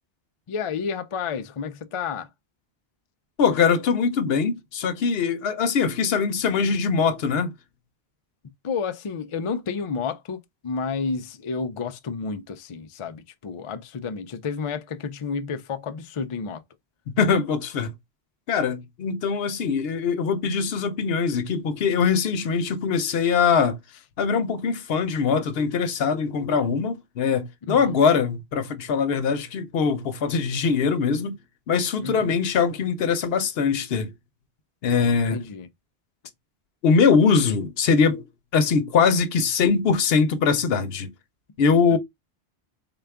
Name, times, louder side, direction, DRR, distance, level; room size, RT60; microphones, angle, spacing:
voice 1, 0.5-2.3 8.6-16.6 27.7-28.0 32.0-32.4 35.3-35.7 41.9-42.0, left 5 dB, 50° left, 0.3 m, -31 dB
voice 2, 3.4-7.5 17.1-17.9 18.5-23.8 24.2-31.4 31.7-34.1 34.8-35.4 36.8-38.3 38.5-41.1 41.6-42.0, left 5 dB, 70° left, 0.8 m, -22 dB
3.8 x 2.3 x 3.4 m
omnidirectional pair, 1.1 m